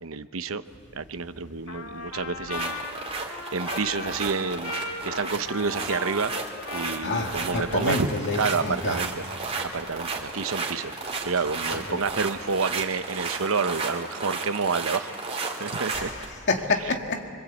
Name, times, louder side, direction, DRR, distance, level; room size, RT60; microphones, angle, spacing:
voice 1, 0.0-0.6 0.9-2.8 3.2-4.7 5.0-6.3 6.7-8.1 8.4-9.2 9.7-11.0 11.2-15.1 15.5-16.1, right 4 dB, 70° right, 0.8 m, -29 dB
Trumpet, 1.7-8.3, left 3 dB, 80° left, 1.9 m, -38 dB
sound 1, 2.5-16.3, right 4 dB, 30° right, 3.0 m, -33 dB
voice 2, 7.0-9.0 11.7-12.0 15.9-17.3, left 3 dB, 55° left, 2.0 m, -28 dB
25.5 x 24.5 x 8.4 m
head